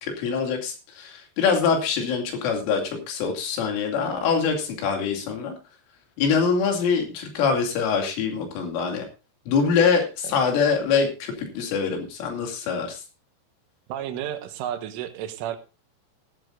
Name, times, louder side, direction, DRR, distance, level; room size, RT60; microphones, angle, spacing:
voice 1, 0.0-5.6 6.2-9.1 9.5-13.0, left 5 dB, 85° left, 3 dB, 5.1 m, -24 dB
voice 2, 13.9-15.6, right 10 dB, 80° right, 9 dB, 3.7 m, -31 dB
17.0 x 13.0 x 2.6 m, 0.29 s
omnidirectional pair, 5.6 m